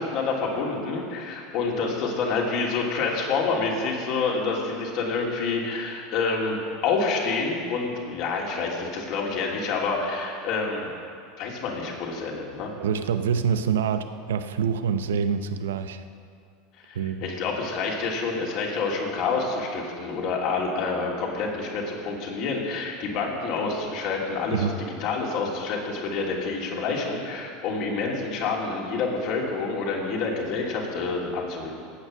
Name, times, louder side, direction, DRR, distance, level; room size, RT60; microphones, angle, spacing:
voice 1, 0.0-10.9 11.4-12.7 16.9-31.7, left 4 dB, 55° left, -2 dB, 3.0 m, -28 dB
voice 2, 12.8-16.0 16.9-17.2 24.5-24.7, right 7 dB, 75° right, 10 dB, 0.7 m, -26 dB
15.0 x 8.9 x 6.4 m, 2.3 s
hypercardioid pair, 80°, 0 cm